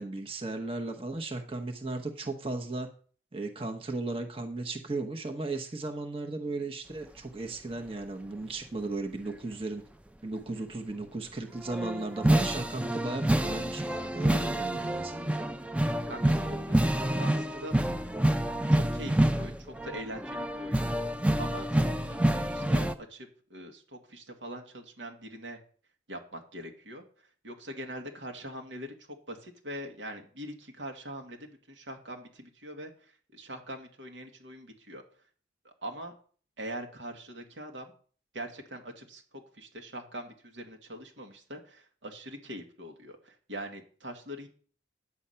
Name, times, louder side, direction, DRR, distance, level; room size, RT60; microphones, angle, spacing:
voice 1, 0.0-2.9 3.3-9.8 10.2-15.3, right 2 dB, 30° right, 4 dB, 0.9 m, -36 dB
sound 1, 11.5-22.9, right 1 dB, 5° right, 0.5 m, -28 dB
voice 2, 16.1-17.7 18.7-21.1 21.4-25.6 26.1-35.0 35.6-36.1 36.6-37.9 38.3-44.5, equal, 90° right, 3 dB, 2.0 m, -43 dB
9.8 x 8.0 x 5.7 m, 0.43 s
head